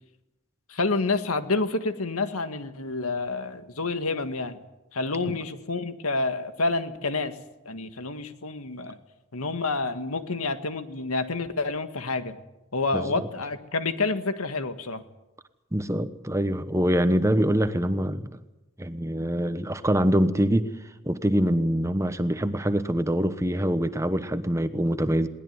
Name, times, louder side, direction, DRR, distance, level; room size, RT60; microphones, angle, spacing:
voice 1, 0.7-4.6 4.9-7.4 7.7-9.0 9.3-12.4 12.7-15.0, left 3 dB, 85° left, 9 dB, 1.8 m, -28 dB
voice 2, 12.9-13.3 15.7-18.4 18.8-20.7 21.0-25.3, equal, 15° right, 11 dB, 1.0 m, -24 dB
21.5 x 18.5 x 9.6 m, 0.98 s
head